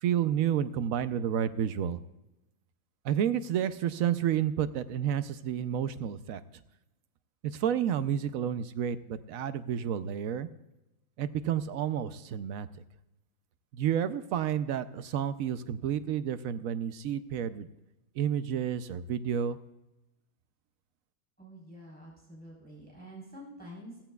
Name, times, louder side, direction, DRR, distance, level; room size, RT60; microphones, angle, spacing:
voice 1, 0.0-2.0 3.0-6.4 7.4-10.5 11.2-12.7 13.7-17.7 18.1-19.6, right 9 dB, 80° right, 12 dB, 1.1 m, -30 dB
voice 2, 21.4-24.0, equal, 5° left, -5 dB, 3.8 m, -48 dB
16.0 x 14.5 x 2.3 m, 0.95 s
omnidirectional pair, 1.4 m